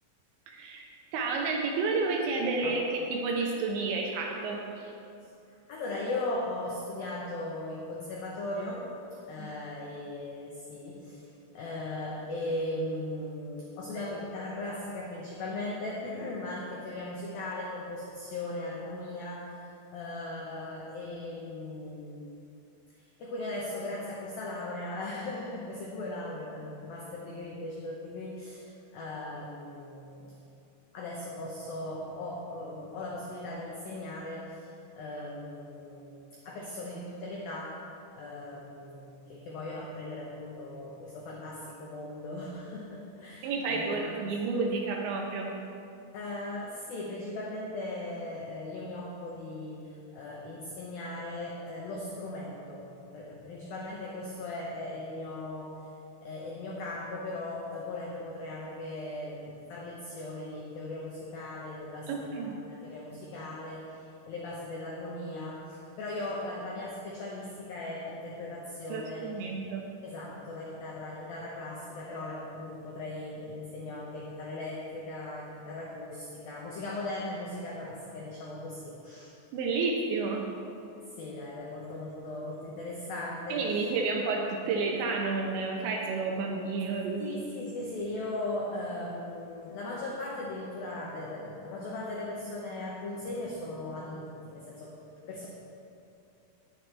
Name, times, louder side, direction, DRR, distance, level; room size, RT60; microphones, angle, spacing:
voice 1, 0.5-0.8 1.1-4.9 9.4-9.5 43.4-45.5 62.1-62.6 68.9-69.9 79.5-80.5 83.5-87.3, right 4 dB, 75° right, 0 dB, 2.9 m, -30 dB
voice 2, 5.7-8.9 9.3-11.3 11.5-19.6 19.9-22.3 23.0-30.3 30.9-34.7 34.9-37.8 38.1-44.2 46.1-55.8 56.2-69.3 70.0-79.3 81.2-83.8 87.2-94.9 95.3-95.5, left 2 dB, 85° left, -3 dB, 2.0 m, -38 dB
18.5 x 7.7 x 3.4 m, 2.6 s
omnidirectional pair, 5.9 m